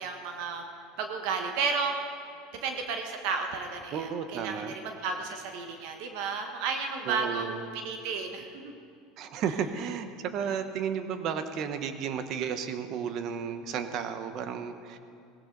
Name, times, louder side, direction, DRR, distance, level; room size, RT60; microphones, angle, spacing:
voice 1, 0.0-2.0 2.5-8.7, right 5 dB, 70° right, 4 dB, 1.4 m, -33 dB
voice 2, 3.9-4.8 7.1-7.6 9.2-15.0, right 7 dB, 55° right, 9 dB, 1.1 m, -33 dB
18.0 x 16.0 x 4.0 m, 2.5 s
supercardioid pair, 115°, 0 cm